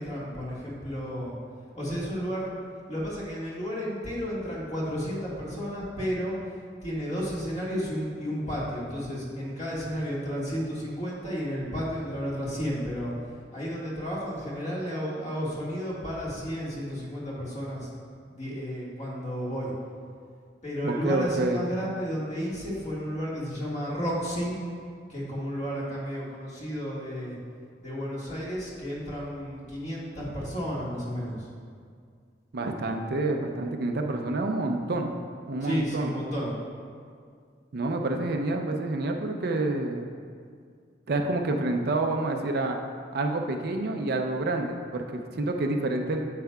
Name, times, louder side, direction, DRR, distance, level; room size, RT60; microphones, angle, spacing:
voice 1, 0.0-1.3 1.7-2.5 2.9-6.4 6.8-13.1 13.5-17.9 18.3-19.7 20.6-24.6 25.1-27.4 27.8-31.4 35.6-36.5, equal, 40° left, -6 dB, 1.8 m, -32 dB
voice 2, 20.8-21.6 32.5-35.1 35.5-36.1 37.7-40.1 41.1-42.8 43.1-46.3, right 2 dB, 60° right, 4 dB, 0.5 m, -28 dB
9.2 x 7.5 x 2.3 m, 2.2 s
head